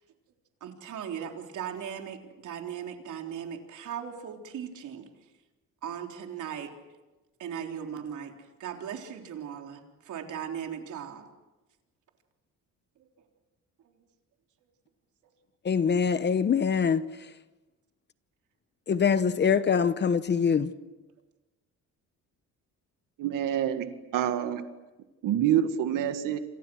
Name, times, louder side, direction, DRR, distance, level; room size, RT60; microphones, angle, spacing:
voice 1, 0.6-5.1 5.8-6.7 7.4-11.2 13.0-13.1 13.8-14.0 18.9-19.0 20.3-20.7, right 8 dB, 70° right, 3 dB, 3.8 m, -38 dB
voice 2, 15.6-17.0 18.9-20.7, left 6 dB, 35° left, 13 dB, 1.0 m, -24 dB
voice 3, 23.2-24.6 25.2-26.4, right 10 dB, 90° right, 8 dB, 1.9 m, -27 dB
28.0 x 27.5 x 6.3 m, 1.1 s
cardioid pair, 150°, 32 cm